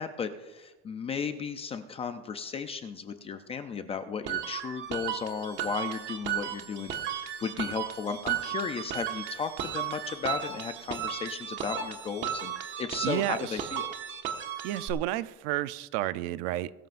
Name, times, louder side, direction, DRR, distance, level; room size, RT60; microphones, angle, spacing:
voice 1, 0.0-13.9, left 6 dB, 20° left, 8 dB, 0.4 m, -35 dB
sound 1, 4.3-14.9, right 9 dB, 35° right, 1.4 m, -35 dB
voice 2, 13.0-13.7 14.6-16.7, right 15 dB, 65° right, 15 dB, 0.6 m, -31 dB
21.5 x 13.0 x 2.5 m, 1.2 s
cardioid pair, 170°, 34 cm